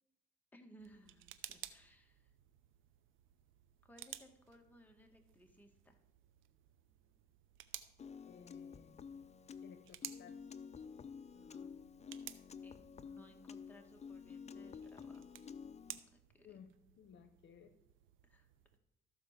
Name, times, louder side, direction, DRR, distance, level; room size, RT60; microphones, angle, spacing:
voice 1, 0.5-2.3 3.8-6.0 11.3-11.7 12.3-15.3 16.1-16.5 18.2-18.5, equal, 10° left, 2 dB, 1.8 m, -62 dB
sound 1, 0.8-18.8, right 12 dB, 85° right, 0.7 m, -56 dB
Piano, 8.0-16.0, left 6 dB, 35° left, 0.6 m, -51 dB
voice 2, 8.2-9.0 9.6-10.4 16.4-16.7 17.0-17.7, left 7 dB, 70° left, 10 dB, 0.9 m, -58 dB
14.0 x 4.7 x 6.7 m, 0.82 s
cardioid pair, 90°, 20 cm